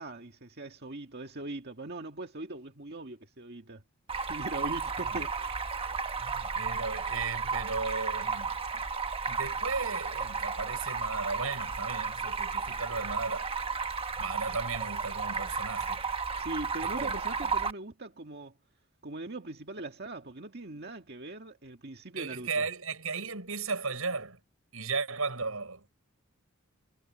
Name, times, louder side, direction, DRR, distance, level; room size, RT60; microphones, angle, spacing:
voice 1, 0.0-3.8 4.3-5.7 16.4-18.5 19.0-22.6, right 2 dB, 50° right, 1.9 m, -40 dB
Stream, 4.1-17.7, right 5 dB, 25° right, 1.2 m, -33 dB
voice 2, 6.2-8.8 9.3-13.5 14.2-16.0 16.8-17.3 22.2-24.4 24.7-25.9, right 4 dB, 85° right, 6.5 m, -36 dB
head